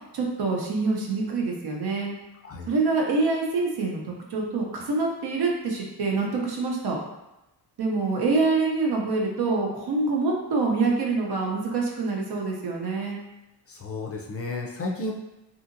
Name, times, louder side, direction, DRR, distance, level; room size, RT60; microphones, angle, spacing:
voice 1, 0.1-2.1 2.7-7.0 7.8-13.2, right 3 dB, 65° right, -1 dB, 0.7 m, -26 dB
voice 2, 13.7-15.1, left 2 dB, 35° left, -1 dB, 0.4 m, -32 dB
2.8 x 2.6 x 2.5 m, 0.95 s
cardioid pair, 105°, 41 cm